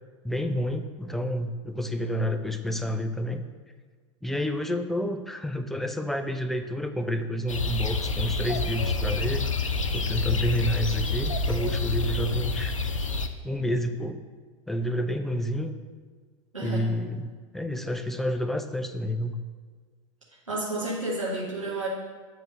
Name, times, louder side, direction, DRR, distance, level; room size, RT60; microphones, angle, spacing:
voice 1, 0.2-3.4 4.2-9.5 9.9-12.7 13.4-14.2 14.7-15.8 16.6-19.4, equal, ahead, 7 dB, 0.4 m, -29 dB
sound 1, 7.5-13.3, left 3 dB, 85° left, 0.5 m, -28 dB
voice 2, 16.5-16.9 20.5-21.9, right 2 dB, 85° right, -6 dB, 1.4 m, -31 dB
7.7 x 3.5 x 6.5 m, 1.5 s
figure-of-eight pair, 85°, 16 cm